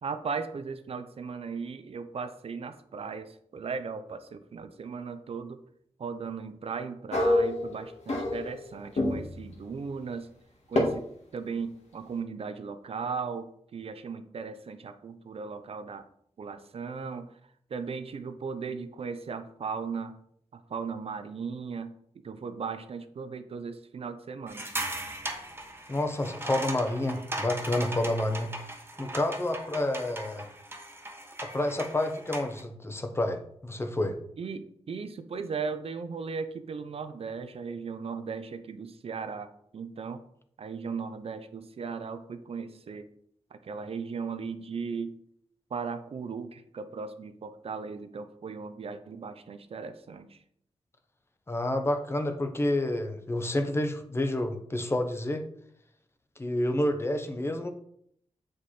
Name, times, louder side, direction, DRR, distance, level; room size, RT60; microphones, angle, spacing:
voice 1, 0.0-5.6 6.0-10.3 10.7-11.0 11.3-16.0 16.4-17.3 17.7-20.2 20.5-21.9 22.2-24.7 34.4-40.2 40.6-43.1 43.5-45.1 45.7-50.4, right 5 dB, 55° right, 10 dB, 0.6 m, -37 dB
sound 1, 7.1-8.7 9.0-9.4 10.8-10.9, left 2 dB, 70° left, 1.9 m, -26 dB
sound 2, 24.5-32.6, right 1 dB, 20° right, 1.1 m, -38 dB
voice 2, 25.9-28.5 29.0-30.5 31.4-34.2 51.5-55.4 56.4-57.7, left 1 dB, 20° left, 6 dB, 0.7 m, -29 dB
7.9 x 5.1 x 4.2 m, 0.68 s
wide cardioid pair, 160°, 12 cm